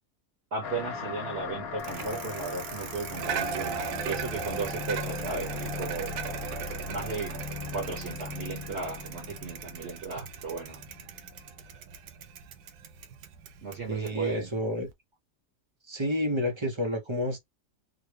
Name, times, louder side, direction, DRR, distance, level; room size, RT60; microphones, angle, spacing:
voice 1, 0.5-6.1 6.9-7.4 7.7-10.8 13.6-14.5, right 4 dB, 45° right, 1.2 m, -35 dB
sound 1, 0.6-11.6, left 5 dB, 70° left, 1.2 m, -39 dB
Bicycle, 1.8-14.9, right 6 dB, 75° right, 1.2 m, -38 dB
voice 2, 13.9-14.9 15.9-17.4, equal, 25° right, 0.6 m, -30 dB
3.6 x 2.2 x 3.3 m
omnidirectional pair, 1.7 m